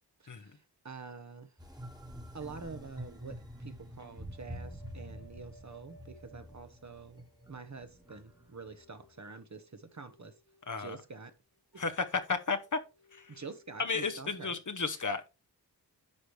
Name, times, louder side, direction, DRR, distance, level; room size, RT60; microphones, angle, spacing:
voice 1, 0.2-0.6 0.8-1.5 2.3-10.3 10.8-11.3 11.7-11.8 13.3-14.6, right 4 dB, 45° right, 1.0 m, -47 dB
sound 1, 1.6-9.1, equal, 10° right, 1.4 m, -47 dB
sound 2, 3.5-3.6 3.9-13.9, equal, 70° left, 3.1 m, -63 dB
voice 2, 11.8-12.8 13.1-13.4 13.8-15.3, left 4 dB, 50° left, 0.9 m, -33 dB
9.8 x 5.1 x 3.2 m
cardioid pair, 45°, 40 cm